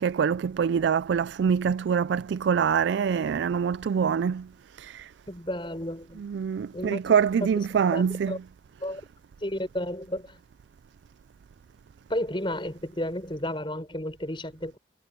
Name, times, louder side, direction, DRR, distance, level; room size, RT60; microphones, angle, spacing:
voice 1, 0.0-4.5 4.7-5.1 6.2-8.4, right 7 dB, 70° right, 0.3 m, -25 dB
voice 2, 5.3-6.2 6.7-7.0 7.9-8.0 8.3-8.4 8.8-9.0 9.4-10.4 12.1-14.8, left 1 dB, 25° left, 5.5 m, -32 dB
head